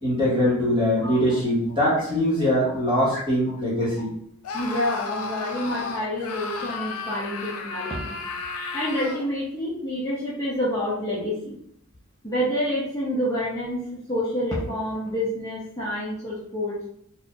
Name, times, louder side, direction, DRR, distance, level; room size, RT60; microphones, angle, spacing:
voice 1, 0.0-4.1, equal, 20° right, -7 dB, 1.4 m, -22 dB
Screaming, 4.4-9.3, left 4 dB, 85° left, 0.5 m, -33 dB
voice 2, 4.5-8.2 8.7-11.5 12.2-16.7, equal, 15° left, -9 dB, 0.8 m, -28 dB
4.1 x 2.6 x 2.5 m, 0.70 s
head